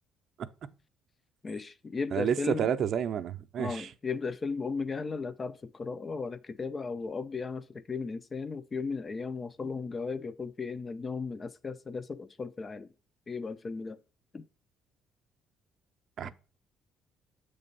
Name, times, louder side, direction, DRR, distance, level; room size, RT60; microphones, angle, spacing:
voice 1, 1.4-2.7 3.6-12.9 13.3-14.0 14.3-14.4 16.2-16.3, left 4 dB, 25° left, 0.4 m, -36 dB
voice 2, 2.1-3.9 16.2-16.3, right 8 dB, 45° right, 0.5 m, -30 dB
7.6 x 3.3 x 5.2 m
cardioid pair, 160°, 0 cm